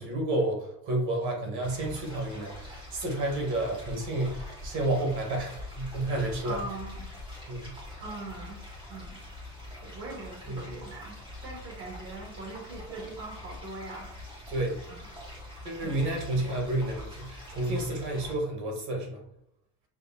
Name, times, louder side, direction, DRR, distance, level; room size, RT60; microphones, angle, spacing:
voice 1, 0.0-6.6 7.5-7.7 10.5-10.7 14.5-14.8 15.6-19.2, right 2 dB, 65° right, 1 dB, 1.5 m, -30 dB
sound 1, 1.6-18.3, left 2 dB, 15° right, 1.3 m, -44 dB
voice 2, 6.4-7.1 8.0-8.6 8.9-9.2 9.8-11.2 11.4-14.1 14.9-15.1 15.8-16.0, right 2 dB, 50° right, -1 dB, 1.4 m, -41 dB
6.2 x 2.8 x 2.4 m, 0.76 s
cardioid pair, 145°, 31 cm